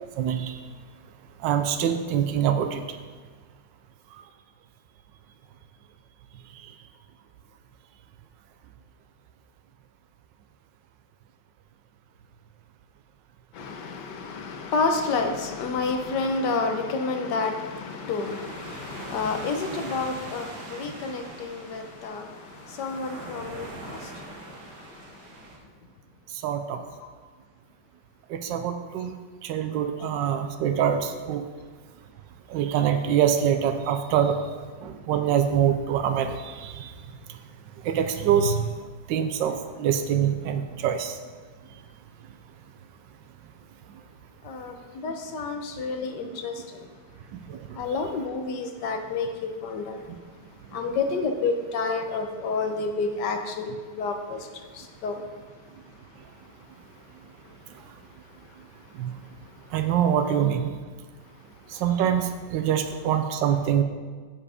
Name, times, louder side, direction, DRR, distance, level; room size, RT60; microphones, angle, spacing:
voice 1, 0.2-0.6 1.4-2.8 26.4-26.8 28.3-29.1 29.4-31.4 32.5-34.4 34.8-36.9 37.8-38.7 39.1-41.1 47.5-47.6 59.0-59.1 59.7-60.7 61.7-63.8, right 9 dB, 90° right, 7 dB, 1.3 m, -24 dB
voice 2, 13.5-25.4 27.0-27.1 30.0-30.1 44.4-46.9 47.7-50.2 50.7-55.3 57.8-57.9 58.3-59.0 59.4-59.5 61.6-61.7, left 4 dB, 70° left, 5 dB, 1.4 m, -30 dB
sound 1, 17.4-25.6, right 2 dB, 65° right, 1.7 m, -42 dB
7.3 x 7.0 x 4.9 m, 1.5 s
omnidirectional pair, 1.9 m